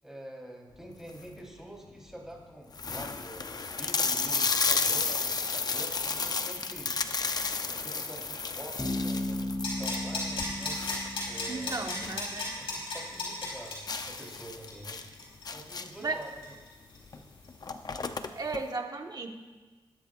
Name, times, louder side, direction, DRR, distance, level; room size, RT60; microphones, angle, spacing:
voice 1, 0.0-7.0 7.7-10.8 11.3-12.1 12.6-15.0 15.5-16.5 17.1-17.2, right 1 dB, 5° right, -2 dB, 4.0 m, -46 dB
sound 1, 0.9-1.4 2.0-2.1 2.3-2.4 2.7-12.3 12.6-12.7 13.1-13.2 13.9-16.1 17.1-17.2 17.5-18.6, left 4 dB, 45° left, 0.7 m, -32 dB
Bass guitar, 8.8-12.5, left 1 dB, 15° left, 2.9 m, -36 dB
sound 2, 9.6-17.1 17.4-17.5, left 3 dB, 85° left, 4.8 m, -35 dB
voice 2, 11.5-12.5 16.0-16.2 18.3-19.3, right 3 dB, 45° right, 3 dB, 1.5 m, -35 dB
19.5 x 11.5 x 2.5 m, 1.2 s
cardioid pair, 80°, 9 cm